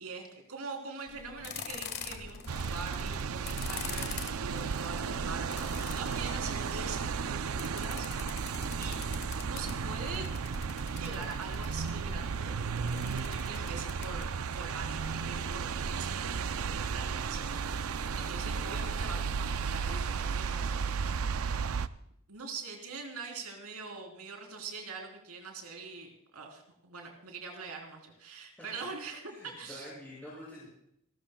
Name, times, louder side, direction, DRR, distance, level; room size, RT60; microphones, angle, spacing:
voice 1, 0.0-8.4 8.8-9.0 9.4-10.3 10.9-12.6 13.0-20.9 22.3-29.9, right 4 dB, 85° right, 2 dB, 3.5 m, -43 dB
sound 1, 1.1-15.5, left 6 dB, 45° left, 1.6 m, -46 dB
sound 2, 2.5-21.9, right 5 dB, 70° right, 0.5 m, -34 dB
Thunder / Rain, 4.3-4.4 4.6-4.7 5.0-20.9, equal, 20° right, 3.9 m, -58 dB
voice 2, 29.3-30.7, left 1 dB, 5° left, -8 dB, 6.5 m, -48 dB
29.0 x 13.5 x 2.3 m, 0.76 s
head